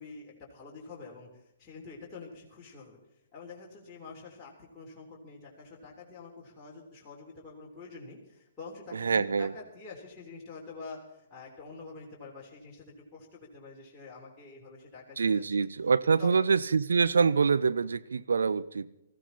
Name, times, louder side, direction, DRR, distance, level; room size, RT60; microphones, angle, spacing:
voice 1, 0.0-3.0 3.3-15.4 16.2-16.5, left 4 dB, 15° left, -4 dB, 3.4 m, -47 dB
voice 2, 8.9-9.5 15.2-18.9, right 5 dB, 65° right, 14 dB, 0.7 m, -25 dB
19.0 x 15.0 x 4.1 m, 0.88 s
figure-of-eight pair, 125°, 0 cm